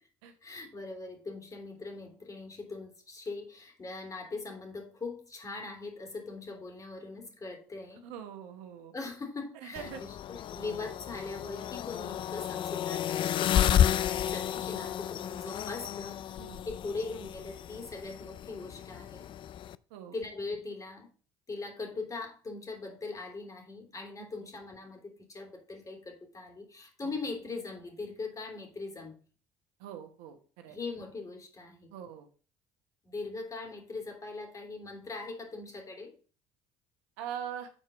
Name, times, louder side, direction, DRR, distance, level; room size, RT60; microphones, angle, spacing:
voice 1, 0.4-8.1 8.9-16.2 16.6-19.3 20.1-21.1 21.5-29.2 30.7-31.9 33.0-36.1, left 3 dB, 30° left, 3 dB, 3.2 m, -41 dB
voice 2, 8.0-8.9 9.6-10.0 16.4-16.6 19.9-20.1 29.8-30.8 31.9-32.3 37.2-37.7, right 9 dB, 80° right, 7 dB, 1.2 m, -42 dB
sound 1, 9.8-19.8, left 10 dB, 50° left, 0.4 m, -32 dB
7.8 x 4.4 x 5.1 m, 0.39 s
hypercardioid pair, 70°, 11 cm